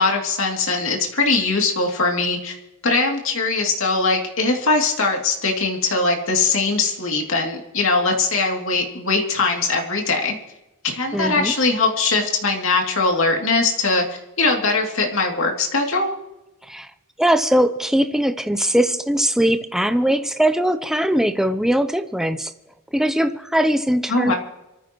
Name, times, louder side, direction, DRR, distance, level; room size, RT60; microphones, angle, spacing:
voice 1, 0.0-2.6 2.8-10.4 10.8-16.1 24.1-24.3, left 3 dB, 60° left, 1 dB, 2.8 m, -21 dB
voice 2, 11.1-11.5 16.6-16.9 17.2-22.5 22.9-24.3, right 1 dB, ahead, 9 dB, 0.6 m, -20 dB
26.0 x 14.5 x 3.1 m, 0.98 s
head